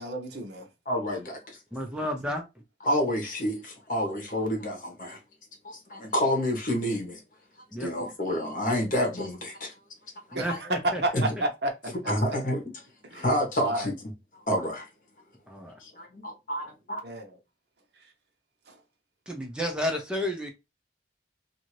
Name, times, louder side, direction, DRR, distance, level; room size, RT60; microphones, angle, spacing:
voice 1, 0.0-0.7 10.3-12.1 13.1-13.2 13.6-13.9 17.0-17.3 18.7-18.8, right 1 dB, 70° right, 0.8 m, -30 dB
voice 2, 0.9-1.4 2.8-5.2 5.6-7.2 7.8-9.7 10.5-10.6 11.1-11.3 12.1-12.6 13.1-13.9 14.5-14.9 15.8-17.0, equal, 50° left, 1.1 m, -28 dB
voice 3, 1.7-2.4 7.7-7.9 10.3-11.0 15.5-15.7 19.3-20.5, equal, 5° right, 0.5 m, -31 dB
2.7 x 2.6 x 3.0 m
head